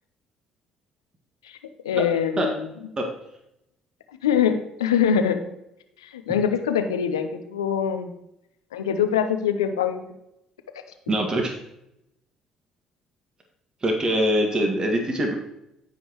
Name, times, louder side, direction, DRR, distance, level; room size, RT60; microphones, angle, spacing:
voice 1, 1.8-2.7 4.2-5.4 6.0-8.1 8.7-10.0, left 8 dB, 90° left, 8 dB, 0.7 m, -23 dB
voice 2, 11.1-11.5 13.8-15.4, equal, 35° right, 1 dB, 1.8 m, -23 dB
14.5 x 5.2 x 3.1 m, 0.84 s
hypercardioid pair, 55°, 2 cm